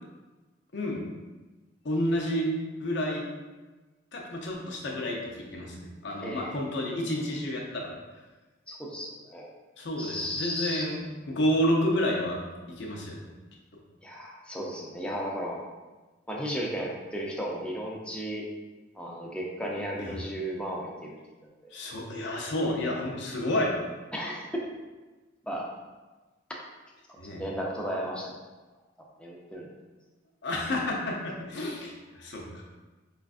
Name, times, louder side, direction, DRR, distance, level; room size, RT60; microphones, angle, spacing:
voice 1, 1.8-2.5 2.8-3.2 4.1-7.9 9.8-12.4 12.8-13.2 20.0-20.2 21.7-23.7 27.2-27.4 30.4-32.6, left 1 dB, 65° left, -2 dB, 0.6 m, -30 dB
voice 2, 6.2-6.6 8.7-9.5 10.0-10.8 14.0-15.6 16.3-18.4 19.0-21.2 21.6-21.7 24.1-24.6 25.4-25.7 27.1-28.3 29.2-29.7, equal, 5° left, -3 dB, 0.5 m, -34 dB
5.0 x 2.3 x 2.4 m, 1.2 s
head